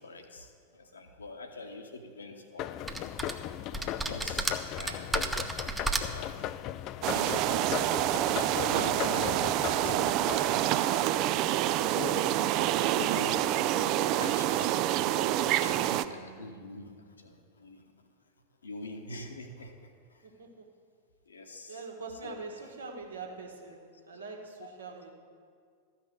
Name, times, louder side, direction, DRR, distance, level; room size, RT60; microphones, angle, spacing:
voice 1, 0.0-2.8 4.0-5.3 5.8-6.3 7.1-10.5 10.9-11.0 11.8-12.3 12.8-13.5 13.8-13.9 14.2-14.8 15.1-17.8 18.6-19.7 20.1-20.2 21.3-21.9 22.2-22.4 23.3-23.4 24.6-24.7, left 2 dB, 75° left, 5 dB, 1.2 m, -44 dB
sound 1, 2.6-11.7, left 12 dB, 40° left, 0.3 m, -38 dB
sound 2, 2.9-3.3 3.7-6.3, right 2 dB, 10° right, 0.8 m, -32 dB
sound 3, 7.0-16.0, right 13 dB, 40° right, 0.4 m, -27 dB
voice 2, 20.2-20.6 21.7-23.8 24.1-25.1, right 4 dB, 70° right, 1 dB, 1.6 m, -43 dB
13.0 x 5.9 x 7.7 m, 2.1 s
figure-of-eight pair, 90°, 0 cm